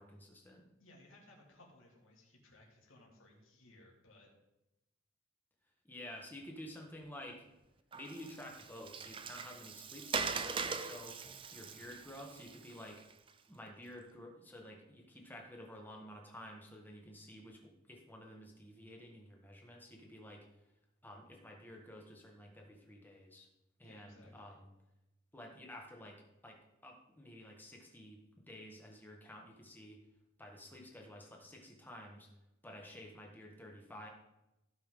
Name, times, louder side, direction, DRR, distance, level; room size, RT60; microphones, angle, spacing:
voice 1, 0.0-0.7 5.8-7.4 7.9-11.2 11.5-13.0 13.5-20.4 21.0-23.5 23.8-24.7 25.3-30.0 30.4-32.3 32.6-34.1, left 1 dB, 10° left, 0 dB, 1.5 m, -51 dB
voice 2, 0.8-4.3 23.8-24.6, left 2 dB, 75° left, -1 dB, 2.7 m, -61 dB
Water, 7.9-13.3, right 5 dB, 25° right, 0.4 m, -41 dB
15.5 x 5.8 x 3.8 m, 0.92 s
head